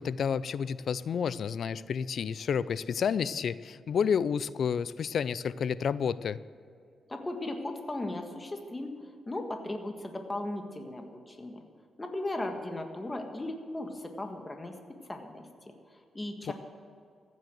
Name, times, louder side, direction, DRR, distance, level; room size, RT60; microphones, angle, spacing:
voice 1, 0.0-6.4 16.5-16.6, left 7 dB, 65° left, 18 dB, 0.4 m, -30 dB
voice 2, 7.1-8.9 9.3-11.6 12.0-14.8 15.0-16.5, left 1 dB, 20° left, 4 dB, 1.5 m, -37 dB
14.5 x 9.3 x 7.8 m, 2.3 s
cardioid pair, 105°, 0 cm